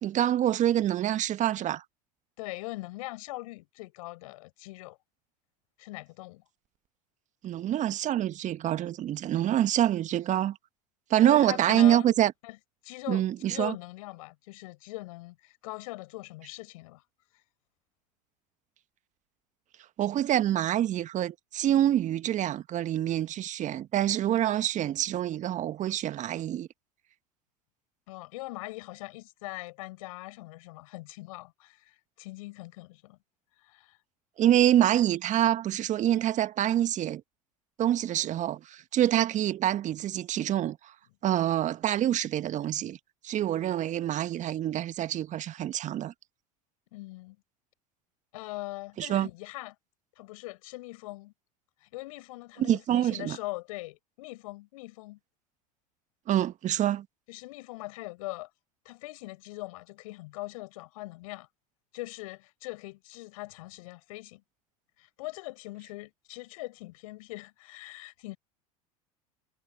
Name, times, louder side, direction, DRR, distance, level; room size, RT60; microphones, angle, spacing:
voice 1, 0.0-1.8 7.4-10.6 11.1-12.3 13.1-13.7 20.0-26.7 34.4-37.2 37.8-40.8 41.2-43.0 43.2-46.1 49.0-49.3 52.6-53.4 56.3-57.1, right 12 dB, 40° right, 1.8 m, -26 dB
voice 2, 2.4-5.0 5.8-6.4 11.2-12.1 12.4-12.6 12.8-17.0 28.1-33.2 33.6-34.0 46.9-47.4 48.3-49.7 50.2-51.3 51.8-55.2 57.3-58.5 58.8-61.5 61.9-64.4 65.0-68.4, left 21 dB, 65° left, 6.6 m, -41 dB
figure-of-eight pair, 75°, 19 cm